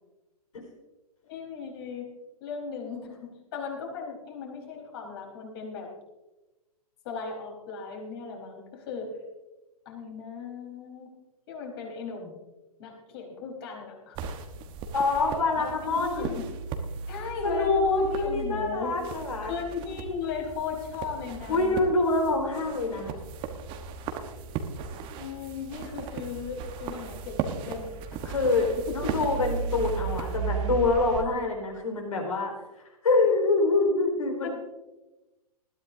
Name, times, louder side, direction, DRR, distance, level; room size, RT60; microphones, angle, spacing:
voice 1, 1.3-2.1 2.4-5.9 7.0-9.2 9.8-11.1 11.5-12.4 12.8-14.3 15.5-16.4 17.1-19.0 19.4-21.8 25.1-27.9 28.9-29.0 34.4-34.5, left 5 dB, 40° left, 0 dB, 4.4 m, -37 dB
sound 1, 14.1-31.2, right 5 dB, 25° right, 1.2 m, -36 dB
voice 2, 14.9-16.3 17.4-19.5 21.5-23.1 28.2-32.5 33.0-34.5, left 3 dB, 60° left, 2 dB, 4.4 m, -25 dB
20.0 x 14.0 x 2.7 m, 1.1 s
figure-of-eight pair, 120°, 20 cm